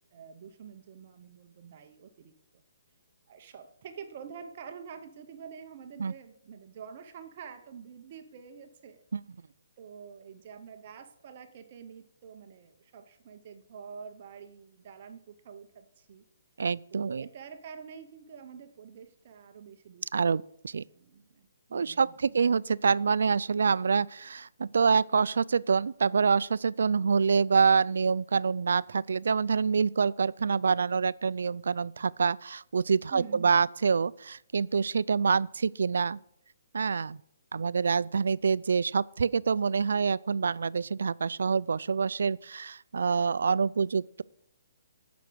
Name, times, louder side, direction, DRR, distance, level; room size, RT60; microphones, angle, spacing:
voice 1, 0.1-2.3 3.3-9.0 9.8-16.2 16.9-20.4 20.9-22.2 33.1-33.7, right 7 dB, 25° right, 0.8 m, -47 dB
voice 2, 16.6-17.3 20.1-20.8 21.7-36.2 36.7-37.2 37.5-44.2, right 5 dB, 65° right, 0.3 m, -26 dB
16.0 x 6.1 x 6.2 m
hypercardioid pair, 180°, 0 cm